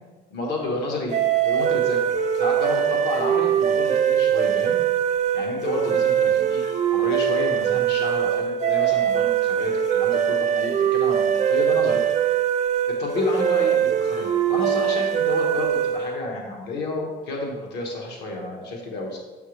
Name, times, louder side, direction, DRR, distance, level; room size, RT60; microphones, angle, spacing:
voice 1, 0.3-2.0 2.3-4.8 5.3-6.6 6.9-12.0 12.9-19.2, left 2 dB, 85° left, 0 dB, 1.3 m, -30 dB
sound 1, 1.1-16.2, right 9 dB, 45° right, 0.5 m, -22 dB
6.9 x 5.6 x 3.2 m, 1.3 s
cardioid pair, 110°, 17 cm